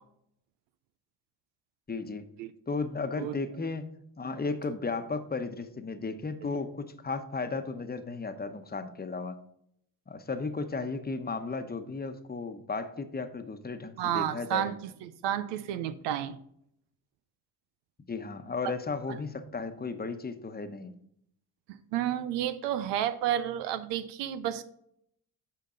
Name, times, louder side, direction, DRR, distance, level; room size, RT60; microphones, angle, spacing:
voice 1, 1.9-2.3 2.7-3.9 4.2-9.4 10.1-14.7 18.1-20.9, left 4 dB, 25° left, 8 dB, 1.0 m, -34 dB
voice 2, 14.0-16.4 21.7-24.6, right 11 dB, 80° right, 12 dB, 0.6 m, -31 dB
8.8 x 5.7 x 3.9 m, 0.70 s
supercardioid pair, 65°, 41 cm